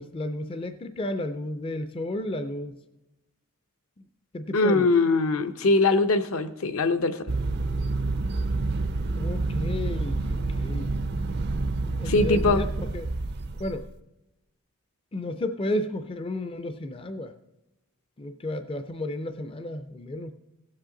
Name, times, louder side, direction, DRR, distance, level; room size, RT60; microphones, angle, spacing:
voice 1, 0.0-2.7 4.3-4.9 9.2-11.0 12.0-12.6 12.9-13.1 13.6-13.9 15.1-17.3 18.2-20.3, left 1 dB, 25° left, 10 dB, 0.4 m, -32 dB
voice 2, 4.5-7.3 12.0-12.7, left 3 dB, 75° left, 9 dB, 0.7 m, -22 dB
sound 1, 7.3-13.9, right 2 dB, 50° right, 0.4 m, -28 dB
17.0 x 7.6 x 3.8 m, 0.95 s
head